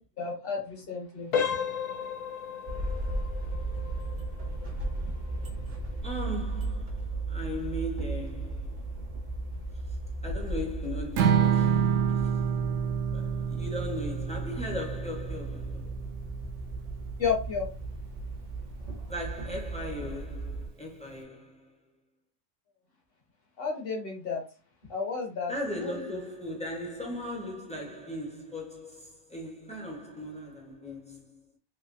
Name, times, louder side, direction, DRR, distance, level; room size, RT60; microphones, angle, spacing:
voice 1, 0.2-1.3 17.2-17.7 23.6-24.4 24.9-25.5 25.8-26.0, left 5 dB, 50° left, 1.2 m, -31 dB
sound 1, 1.3-12.0 12.3-12.6 13.2-13.3 13.8-13.9, left 7 dB, 70° left, 0.4 m, -38 dB
sound 2, 2.7-20.7, right 2 dB, 40° right, 0.6 m, -36 dB
voice 2, 6.0-8.9 10.2-12.5 13.1-16.1 19.1-21.8 25.5-31.4, left 1 dB, 5° left, 0.6 m, -38 dB
Strum, 11.2-17.4, right 8 dB, 90° right, 1.0 m, -28 dB
3.3 x 2.9 x 2.5 m
omnidirectional pair, 1.4 m